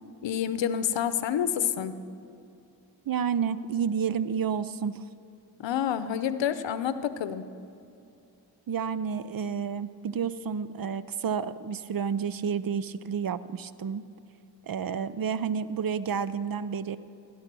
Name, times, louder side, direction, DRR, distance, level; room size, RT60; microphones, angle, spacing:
voice 1, 0.2-1.9 5.6-7.4, left 9 dB, 85° left, 12 dB, 0.7 m, -28 dB
voice 2, 3.1-5.0 8.7-14.0 14.7-17.0, right 7 dB, 55° right, 15 dB, 0.6 m, -30 dB
16.0 x 10.5 x 6.1 m, 2.7 s
cardioid pair, 55°, 43 cm